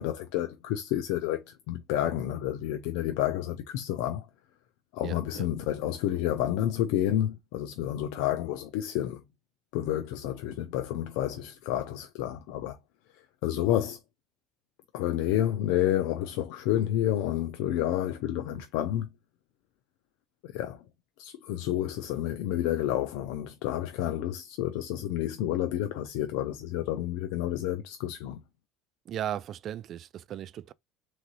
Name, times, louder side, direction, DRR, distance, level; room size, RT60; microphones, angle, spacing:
voice 1, 0.0-4.3 4.9-9.2 9.7-12.8 13.4-14.0 14.9-19.1 20.4-20.8 21.2-28.4, left 12 dB, 75° left, 0.5 m, -30 dB
voice 2, 5.0-5.5 29.1-30.7, right 10 dB, 45° right, 0.3 m, -36 dB
3.7 x 3.2 x 4.0 m
cardioid pair, 130°, 0 cm